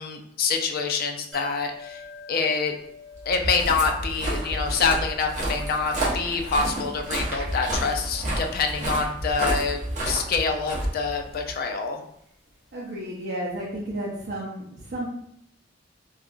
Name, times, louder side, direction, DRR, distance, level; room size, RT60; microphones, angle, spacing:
voice 1, 0.0-2.0 2.3-2.7 3.3-12.0, left 5 dB, 50° left, 4 dB, 0.4 m, -26 dB
sound 1, 1.3-12.9 13.2-13.3, left 3 dB, 10° left, 1.4 m, -48 dB
Walk footsteps, 3.2-11.5, right 1 dB, 40° right, 0.9 m, -30 dB
voice 2, 12.7-15.1, right 1 dB, 60° right, -6 dB, 0.6 m, -32 dB
2.7 x 2.4 x 2.4 m, 0.73 s
head